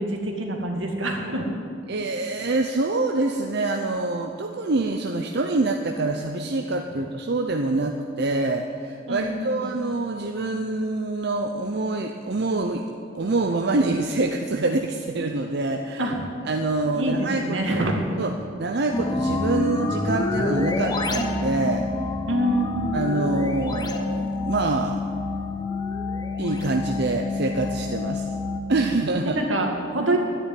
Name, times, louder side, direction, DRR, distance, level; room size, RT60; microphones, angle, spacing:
voice 1, 0.0-1.5 9.1-9.6 16.0-16.2 17.0-18.1 18.9-19.0 22.3-23.1 29.2-30.2, right 1 dB, 85° right, 1 dB, 2.2 m, -26 dB
voice 2, 1.9-12.8 13.1-16.1 16.4-17.8 18.2-21.9 22.9-25.0 26.4-28.3 28.7-29.4, right 2 dB, 60° right, 4 dB, 0.7 m, -25 dB
sound 1, 18.9-28.6, left 3 dB, 20° left, 0.9 m, -27 dB
12.0 x 9.9 x 9.4 m, 2.5 s
head